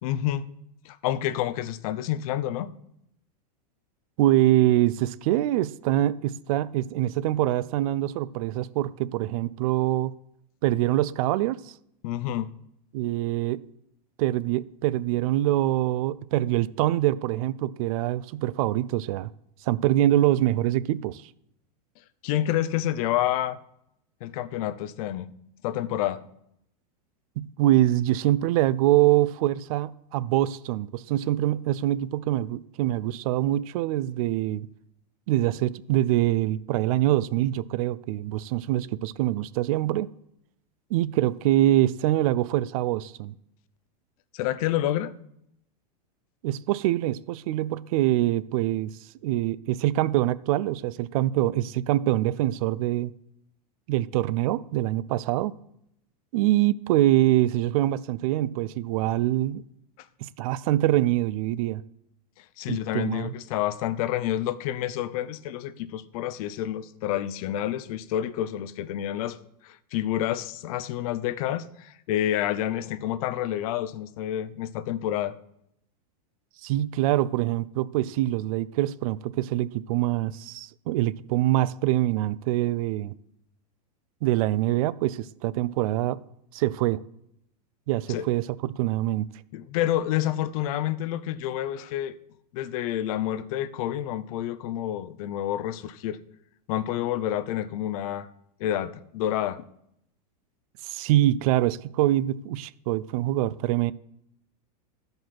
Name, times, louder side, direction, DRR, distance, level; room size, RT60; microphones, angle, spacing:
voice 1, 0.0-0.5 0.8-2.7 12.0-12.5 22.2-23.6 24.2-25.3 25.6-26.2 44.3-45.1 60.0-60.1 62.4-69.4 69.6-75.3 88.1-88.3 89.5-92.2 92.5-96.2 96.7-98.3 98.6-99.6, left 12 dB, 60° left, 0.6 m, -29 dB
voice 2, 4.2-10.1 10.6-11.6 12.9-13.6 14.2-19.3 19.7-21.2 27.4-34.7 35.3-40.1 40.9-43.3 46.4-48.9 49.2-53.1 53.9-55.5 56.3-59.6 60.2-61.8 62.7-63.3 76.6-83.1 84.2-86.2 86.5-87.0 87.9-89.3 100.8-103.9, right 14 dB, 60° right, 0.4 m, -24 dB
12.0 x 5.3 x 5.8 m
supercardioid pair, 130°, 21 cm